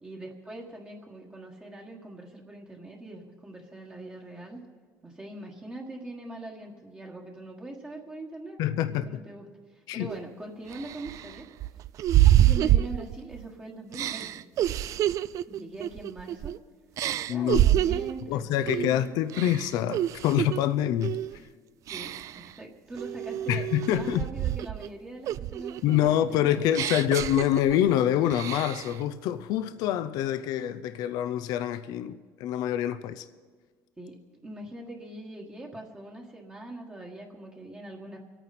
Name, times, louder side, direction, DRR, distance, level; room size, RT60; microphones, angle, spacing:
voice 1, 0.0-4.6 5.0-8.6 8.9-11.5 12.2-14.4 15.5-16.6 17.3-19.1 21.9-26.8 34.0-38.2, right 2 dB, 15° right, 1.5 m, -42 dB
voice 2, 8.6-9.2 9.9-10.1 17.3-17.6 18.3-21.2 23.5-24.3 25.8-33.2, left 11 dB, 75° left, 0.6 m, -26 dB
sound 1, 10.1-10.2 10.7-13.4 13.9-16.6 17.0-18.2 18.7-19.0 19.3-20.6 21.0-21.4 21.9-22.5 23.0-24.9 25.3-27.9 28.3-28.9, right 13 dB, 55° right, 0.3 m, -27 dB
25.5 x 9.1 x 4.2 m
cardioid pair, 125°, 7 cm